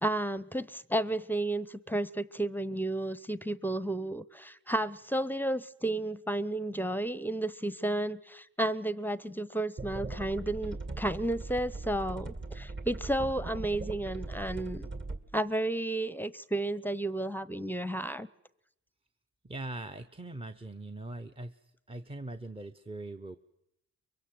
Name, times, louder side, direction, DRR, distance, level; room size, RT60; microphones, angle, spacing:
voice 1, 0.0-14.9 15.3-18.3, right 1 dB, 5° left, 17 dB, 0.8 m, -32 dB
sound 1, 9.8-15.2, right 3 dB, 35° right, 2.3 m, -39 dB
voice 2, 19.4-21.6 21.9-23.4, right 2 dB, 15° right, 7 dB, 1.0 m, -41 dB
24.0 x 23.0 x 7.8 m, 0.82 s
cardioid pair, 90°, 32 cm